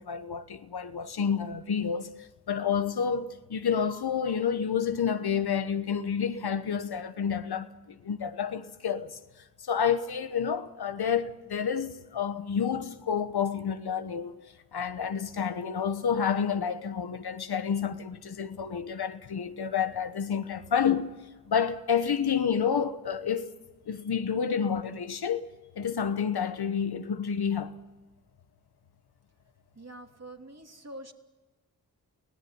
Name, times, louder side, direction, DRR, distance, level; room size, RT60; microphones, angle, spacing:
voice 1, 0.0-9.2 9.6-14.3 14.7-21.1 21.5-23.5 23.9-25.5 25.8-27.8, left 7 dB, 80° left, 1.2 m, -29 dB
voice 2, 29.8-31.1, right 1 dB, 40° right, 2.9 m, -45 dB
24.0 x 17.0 x 9.6 m
cardioid pair, 45°, 38 cm